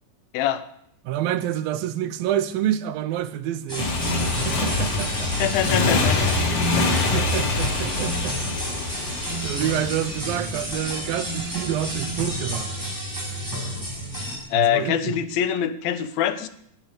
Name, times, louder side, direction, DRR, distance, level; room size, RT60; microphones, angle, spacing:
voice 1, 0.3-0.6 5.4-6.9 14.5-16.5, left 10 dB, 85° left, 12 dB, 2.8 m, -24 dB
voice 2, 1.0-3.9 4.4-5.5 6.8-8.4 8.8-9.0 9.4-12.7 14.5-15.2, right 11 dB, 80° right, 12 dB, 2.6 m, -28 dB
sound 1, 3.7-14.4, equal, 5° right, 5.3 m, -30 dB
Motorcycle, 3.8-10.2, left 3 dB, 45° left, 2.8 m, -25 dB
sound 2, 4.7-10.6, left 3 dB, 65° left, 3.1 m, -38 dB
20.5 x 11.0 x 5.1 m, 0.73 s
omnidirectional pair, 4.1 m